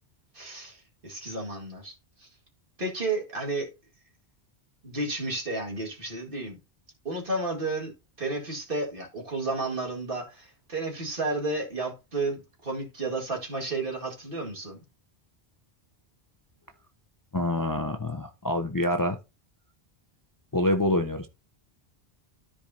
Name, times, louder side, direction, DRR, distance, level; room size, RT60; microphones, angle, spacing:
voice 1, 0.3-2.3 2.8-3.7 4.8-6.6 7.0-7.9 8.2-14.8, right 2 dB, 55° right, 2.2 m, -32 dB
voice 2, 17.3-19.2 20.5-21.3, left 1 dB, 25° left, 0.5 m, -26 dB
13.5 x 4.8 x 2.7 m
omnidirectional pair, 1.1 m